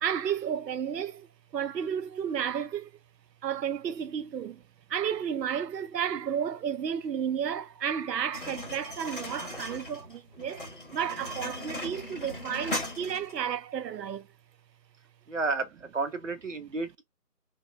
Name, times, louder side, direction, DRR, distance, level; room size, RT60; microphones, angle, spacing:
voice 1, 0.0-2.9 3.4-4.6 4.9-10.7 10.9-14.3, right 8 dB, 85° right, 0.5 m, -32 dB
sound 1, 8.3-13.4, left 1 dB, 35° left, 0.9 m, -38 dB
voice 2, 15.3-17.0, right 3 dB, 50° right, 0.7 m, -32 dB
2.8 x 2.1 x 3.1 m
figure-of-eight pair, 170°, 49 cm